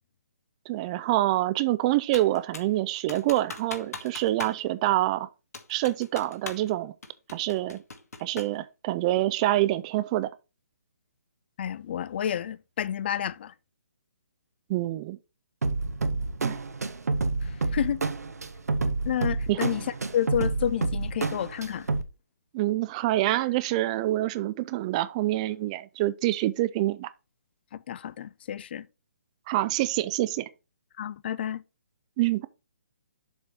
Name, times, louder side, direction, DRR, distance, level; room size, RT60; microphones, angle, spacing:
voice 1, 0.7-5.3 5.7-6.9 7.3-7.8 8.2-10.3 14.7-15.2 16.4-16.6 19.5-19.7 22.5-27.1 29.5-30.5 32.2-32.5, right 16 dB, 25° right, 0.4 m, -26 dB
Computer keyboard, 2.1-2.8 3.1-4.6 4.9-5.0 5.5-6.7 7.0-8.6, left 3 dB, 75° left, 1.5 m, -40 dB
voice 2, 11.6-13.5 17.4-18.0 19.1-19.9 20.1-21.9 27.7-28.9 31.0-31.6, left 10 dB, 40° left, 0.4 m, -30 dB
sound 1, 15.6-22.0, right 3 dB, 75° right, 0.9 m, -29 dB
7.1 x 4.3 x 4.6 m
figure-of-eight pair, 140°, 9 cm